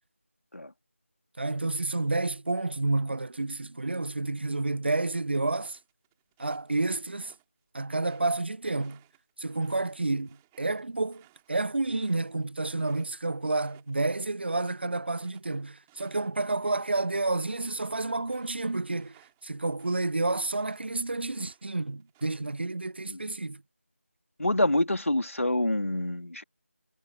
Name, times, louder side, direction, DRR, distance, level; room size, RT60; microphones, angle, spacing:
voice 1, 1.4-5.8 6.4-7.3 7.7-9.0 9.4-11.2 11.5-19.1 19.4-23.6, right 2 dB, 50° right, 0.5 m, -30 dB
sound 1, 5.6-7.5 7.8-13.2 13.5-14.0 14.3-20.9 21.3-22.7, right 20 dB, 10° right, 3.1 m, -62 dB
voice 2, 24.4-26.4, left 1 dB, 70° left, 2.5 m, -26 dB
figure-of-eight pair, 170°, 7 cm